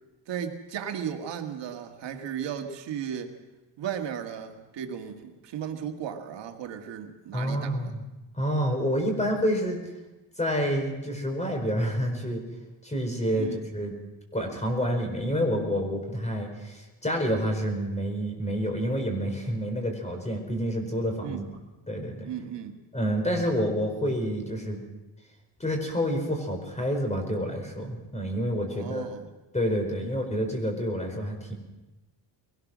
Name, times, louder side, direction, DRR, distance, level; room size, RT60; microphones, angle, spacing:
voice 1, 0.3-3.3 3.8-7.9 13.4-13.7 21.2-21.5 22.2-22.8 28.7-29.3 30.0-30.1, right 8 dB, 75° right, 4 dB, 2.0 m, -35 dB
voice 2, 7.3-8.0 8.3-9.8 10.4-12.4 12.8-13.9 14.3-21.4 21.9-22.3 22.9-24.8 25.6-29.0 29.5-31.5, equal, 15° left, 4 dB, 4.9 m, -28 dB
22.5 x 18.5 x 6.3 m, 1.1 s
cardioid pair, 120°, 43 cm